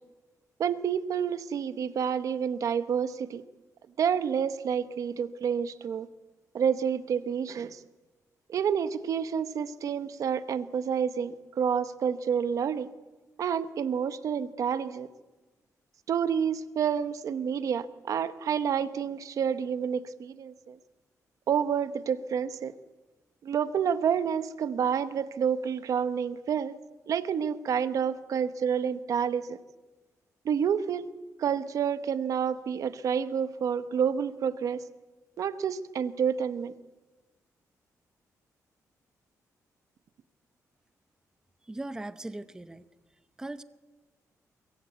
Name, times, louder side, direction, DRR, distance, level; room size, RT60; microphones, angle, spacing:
voice 1, 0.6-3.4 4.0-6.1 6.5-7.8 8.5-12.9 13.4-15.1 16.1-20.8 21.5-22.7 23.4-26.8 27.1-29.6 30.4-31.1 31.4-34.8 35.4-36.7, right 7 dB, 65° right, 12 dB, 1.1 m, -29 dB
voice 2, 41.6-42.9 43.4-43.6, right 2 dB, 10° right, 12 dB, 0.8 m, -39 dB
24.0 x 23.5 x 8.2 m, 1.2 s
wide cardioid pair, 150°, 6 cm